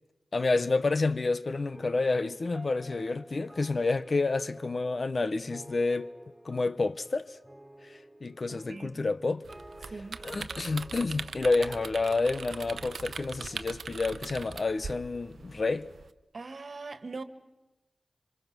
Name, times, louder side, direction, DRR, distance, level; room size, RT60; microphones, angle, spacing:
voice 1, 0.3-6.1 6.4-7.4 7.8-9.5 9.8-9.9 10.2-15.9, left 3 dB, 55° left, 0.9 m, -29 dB
sound 1, 1.7-15.0, right 1 dB, 10° right, 3.9 m, -52 dB
voice 2, 8.5-9.0 9.9-10.2 16.3-17.2, right 3 dB, 65° right, 1.6 m, -41 dB
sound 2, 9.4-16.1, right 5 dB, 90° right, 0.7 m, -41 dB
26.5 x 24.5 x 6.1 m
cardioid pair, 55°, 0 cm